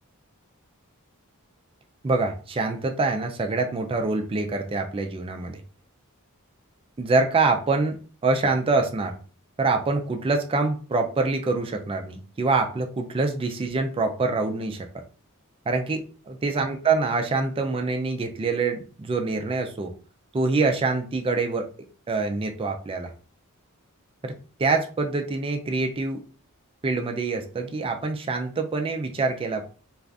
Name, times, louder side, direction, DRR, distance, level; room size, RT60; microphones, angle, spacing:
voice 1, 2.0-5.6 7.0-8.0 8.2-9.2 9.6-14.9 15.7-19.9 20.3-21.7 22.1-23.1 24.2-24.3 24.6-26.2 26.8-29.6, right 3 dB, 25° right, 4 dB, 0.4 m, -25 dB
2.4 x 2.4 x 3.3 m, 0.38 s
head